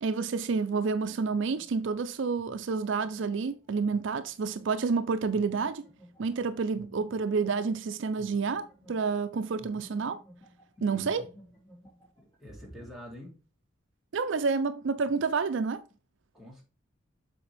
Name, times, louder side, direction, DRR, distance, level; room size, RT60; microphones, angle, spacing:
voice 1, 0.0-5.8 6.2-10.2 10.8-11.2 14.1-15.8, right 4 dB, 65° right, 0.4 m, -29 dB
sound 1, 1.2-10.7 11.0-13.1, equal, 20° left, 3.6 m, -54 dB
voice 2, 10.8-11.1 12.2-13.4 16.3-16.6, equal, ahead, 1.8 m, -46 dB
7.5 x 4.4 x 3.3 m
head